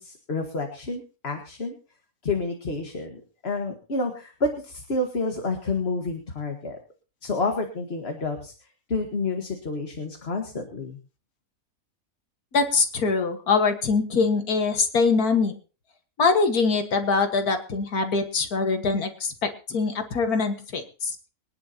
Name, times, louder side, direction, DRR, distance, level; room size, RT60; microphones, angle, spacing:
voice 1, 0.0-1.8 2.2-6.8 7.2-8.5 8.9-11.0, left 3 dB, 45° left, 4 dB, 1.9 m, -29 dB
voice 2, 12.5-15.5 16.2-21.2, left 4 dB, 90° left, 7 dB, 2.2 m, -23 dB
24.0 x 10.5 x 2.9 m, 0.36 s
omnidirectional pair, 1.5 m